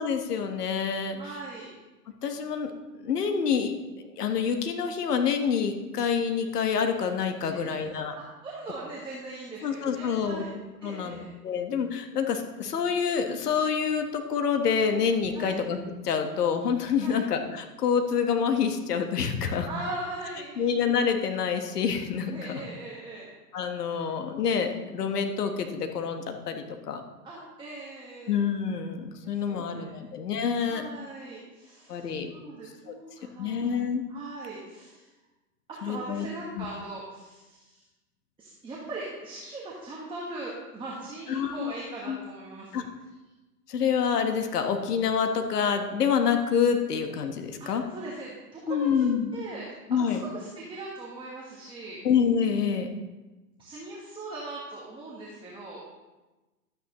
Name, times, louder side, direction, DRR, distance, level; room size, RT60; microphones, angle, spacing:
voice 1, 0.0-1.2 2.2-2.7 3.0-8.2 9.6-10.4 10.8-15.8 16.0-19.7 20.6-22.6 23.5-27.0 28.3-30.8 31.9-32.3 32.9-33.0 33.4-34.0 35.8-36.3 36.6-36.7 41.3-41.7 42.1-42.2 42.7-42.8 43.7-47.8 48.7-49.3 49.9-50.2 52.0-52.9, left 6 dB, 75° left, 5 dB, 1.5 m, -27 dB
voice 2, 1.2-1.7 7.5-7.8 8.1-10.5 10.8-11.3 15.3-15.5 17.0-17.2 19.7-20.7 22.3-23.3 23.9-24.1 27.2-28.4 29.2-30.2 30.6-35.1 35.7-37.8 38.4-42.8 47.6-52.0 53.6-55.9, right 2 dB, 10° right, -4 dB, 1.4 m, -40 dB
12.5 x 9.0 x 3.1 m, 1.1 s
hypercardioid pair, 130°, 48 cm